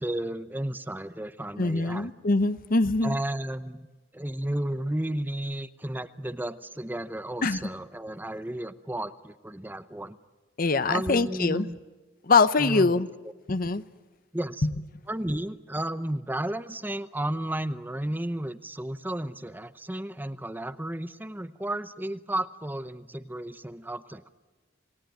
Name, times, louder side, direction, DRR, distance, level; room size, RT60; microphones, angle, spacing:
voice 1, 0.0-2.1 3.0-3.9 4.1-10.2 10.9-11.8 12.6-13.0 14.3-14.7 15.1-24.3, right 1 dB, 10° right, 11 dB, 0.7 m, -33 dB
voice 2, 1.6-3.1 7.4-7.6 10.6-11.7 12.2-13.1 13.5-13.8 14.6-14.7, left 3 dB, 50° left, 14 dB, 0.8 m, -23 dB
28.5 x 19.0 x 9.1 m, 1.3 s
head